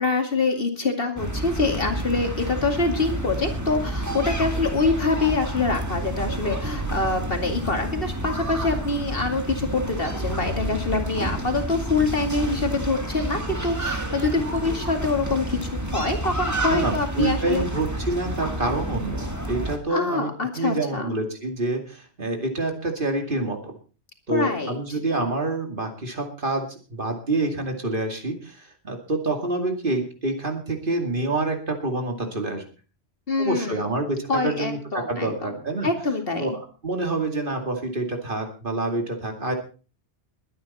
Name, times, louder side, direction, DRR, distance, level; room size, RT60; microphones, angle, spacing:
voice 1, 0.0-17.7 19.9-21.1 24.3-24.8 33.3-34.0 34.3-35.6 35.8-36.6, left 3 dB, 55° left, 5 dB, 2.5 m, -25 dB
sound 1, 1.2-19.8, right 1 dB, 15° right, 1.9 m, -29 dB
voice 2, 16.7-23.7 24.3-32.6 33.4-35.9 36.4-39.5, right 2 dB, 50° right, 4 dB, 2.6 m, -27 dB
21.5 x 9.8 x 4.2 m, 0.36 s
omnidirectional pair, 1.1 m